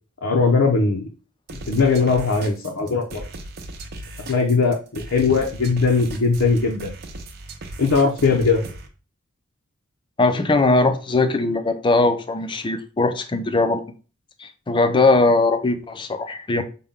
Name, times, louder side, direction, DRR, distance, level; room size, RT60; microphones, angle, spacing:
voice 1, 0.2-1.1 1.7-3.2 4.3-6.9 7.8-8.6, left 4 dB, 70° left, 0.7 m, -19 dB
sound 1, 1.5-8.9, right 2 dB, 50° right, 0.6 m, -37 dB
voice 2, 10.2-13.8 14.4-16.6, left 3 dB, 25° left, 0.4 m, -20 dB
5.5 x 2.2 x 3.5 m
head